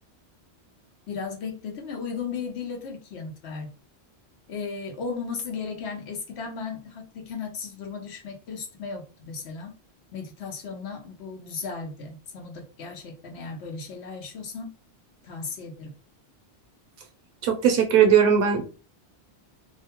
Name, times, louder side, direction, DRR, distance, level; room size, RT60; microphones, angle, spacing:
voice 1, 1.1-3.7 4.5-9.7 10.1-14.7 15.2-15.9, left 5 dB, 75° left, 2 dB, 1.0 m, -35 dB
voice 2, 17.4-18.6, right 8 dB, 65° right, 5 dB, 0.8 m, -19 dB
2.5 x 2.2 x 2.8 m, 0.34 s
omnidirectional pair, 1.1 m